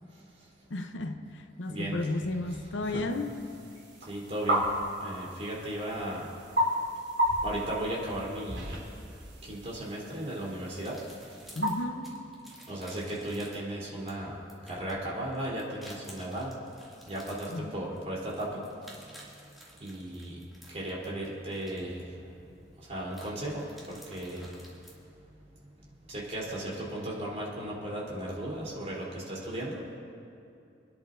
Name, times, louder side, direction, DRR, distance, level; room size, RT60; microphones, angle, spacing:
voice 1, 0.7-3.4 11.5-12.1 17.5-17.8, left 2 dB, 80° left, 6 dB, 0.8 m, -33 dB
voice 2, 1.7-2.1 2.5-3.1 4.0-4.7 5.0-6.3 7.4-8.8 9.4-11.0 12.7-14.4 14.7-16.6 17.1-18.6 19.0-19.3 19.8-22.2 22.8-24.5 26.1-29.9, right 1 dB, 35° right, -5 dB, 3.5 m, -36 dB
sound 1, 3.1-11.8, equal, 65° right, 3.8 m, -34 dB
sound 2, 10.8-24.9, equal, ahead, 2.4 m, -54 dB
29.5 x 10.5 x 2.6 m, 2.6 s
head